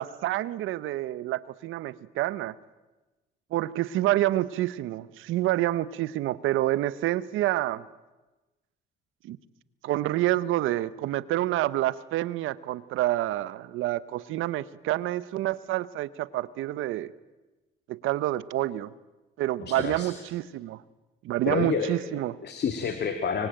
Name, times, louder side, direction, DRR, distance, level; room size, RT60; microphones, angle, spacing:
voice 1, 0.0-2.5 3.5-7.8 9.2-9.4 9.8-17.1 17.9-18.9 19.4-20.8 21.2-22.3, right 15 dB, 90° right, 17 dB, 0.9 m, -28 dB
voice 2, 19.6-20.1 21.4-22.0 22.4-23.5, left 6 dB, 60° left, 7 dB, 2.4 m, -29 dB
24.5 x 24.0 x 9.0 m, 1.1 s
cardioid pair, 90°, 20 cm